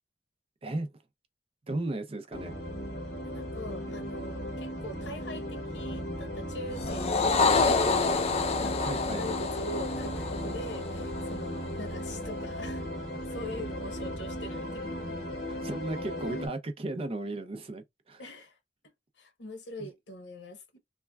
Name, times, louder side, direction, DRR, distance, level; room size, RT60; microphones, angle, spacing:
voice 1, 0.6-1.0 1.7-2.5 3.9-4.0 8.8-9.3 15.3-18.2 19.8-19.9, right 2 dB, 30° right, 0.5 m, -35 dB
sound 1, 2.3-16.5, equal, 60° left, 1.4 m, -36 dB
voice 2, 3.2-8.0 8.6-12.9 13.2-15.0 18.2-18.6 18.8-20.8, left 1 dB, 80° left, 1.0 m, -43 dB
sound 2, 6.8-11.4, left 4 dB, 35° left, 0.4 m, -28 dB
3.2 x 2.2 x 2.2 m
head